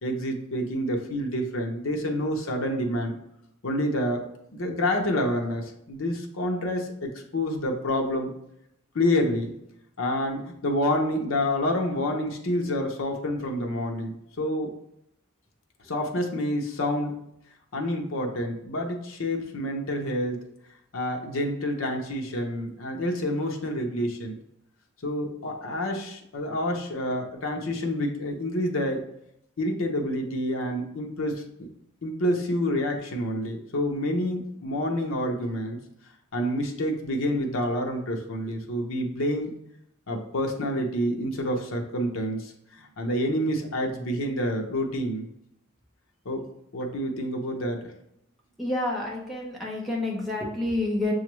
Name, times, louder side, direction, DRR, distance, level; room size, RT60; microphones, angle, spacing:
voice 1, 0.0-3.1 3.6-4.2 4.5-8.3 8.9-9.5 10.0-14.7 15.8-17.1 17.7-20.4 20.9-24.3 25.0-29.1 29.6-31.7 32.0-35.8 36.3-39.5 40.1-45.3 46.2-46.4 46.7-47.9, left 1 dB, 70° left, 2 dB, 0.7 m, -28 dB
voice 2, 48.6-51.1, left 2 dB, ahead, -4 dB, 0.8 m, -28 dB
6.6 x 2.4 x 3.0 m, 0.79 s
head